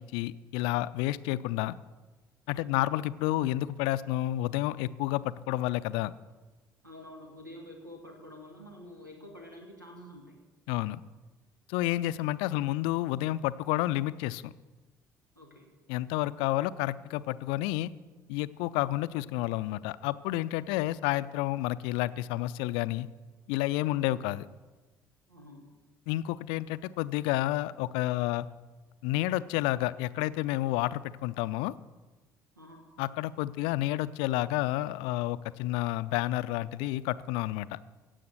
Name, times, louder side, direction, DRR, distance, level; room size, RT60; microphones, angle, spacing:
voice 1, 0.0-1.7 2.5-6.1 10.7-11.0 11.7-14.5 15.9-17.9 18.3-23.1 23.5-24.4 26.1-28.5 29.0-31.7 33.0-37.8, left 16 dB, 60° left, 16 dB, 0.4 m, -30 dB
voice 2, 2.5-2.9 6.8-10.4 15.3-15.8 23.9-24.1 25.3-25.7 32.6-32.9, left 1 dB, 90° right, 1 dB, 1.5 m, -48 dB
16.0 x 7.8 x 6.5 m, 1.3 s
figure-of-eight pair, 50°, 10 cm